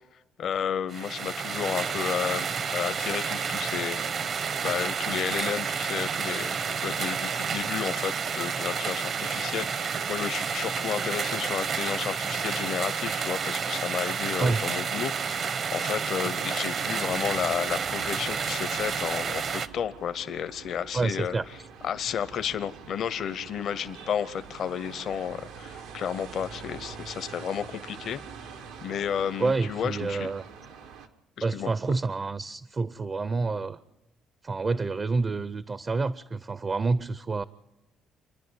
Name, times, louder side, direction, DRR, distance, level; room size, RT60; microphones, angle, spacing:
voice 1, 0.4-21.4 21.8-28.2 28.8-30.3 31.4-31.7, left 8 dB, 65° left, 0.8 m, -32 dB
sound 1, 0.9-19.7, right 6 dB, 55° right, 1.0 m, -30 dB
sound 2, 17.0-31.1, right 6 dB, 85° right, 1.4 m, -45 dB
voice 2, 20.9-21.4 29.4-30.4 31.4-33.8 34.4-37.4, right 3 dB, 35° right, 0.6 m, -28 dB
27.5 x 10.5 x 9.7 m
supercardioid pair, 65°, 0 cm